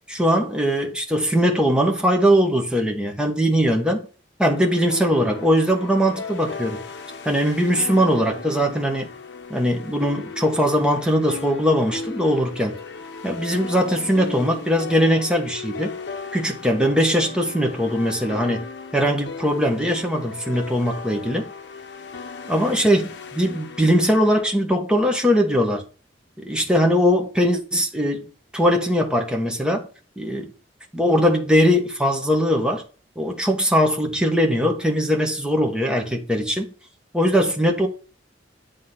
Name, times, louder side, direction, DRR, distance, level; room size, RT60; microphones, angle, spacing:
voice 1, 0.1-4.1 4.4-6.8 7.2-9.1 9.5-12.7 13.2-16.0 16.3-18.6 18.9-21.5 22.5-25.8 26.4-28.2 28.5-29.9 30.2-30.5 30.9-32.8 33.2-36.7 37.1-37.9, equal, 5° right, 1.2 m, -20 dB
sound 1, 4.5-24.4, left 4 dB, 75° left, 0.8 m, -36 dB
9.7 x 3.7 x 5.5 m
head